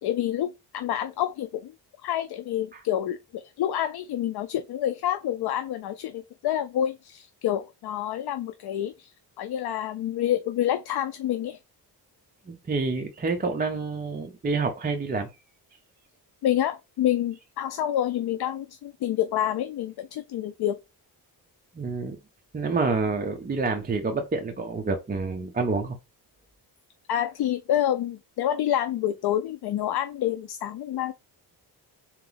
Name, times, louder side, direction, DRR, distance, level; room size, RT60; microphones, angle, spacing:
voice 1, 0.0-1.7 2.0-9.1 9.4-11.6 16.4-20.8 27.1-31.1, left 11 dB, 70° left, 0.5 m, -28 dB
voice 2, 12.5-15.3 21.8-22.2 22.5-26.0, right 4 dB, 25° right, 0.5 m, -28 dB
3.9 x 2.9 x 3.8 m
wide cardioid pair, 140°, 41 cm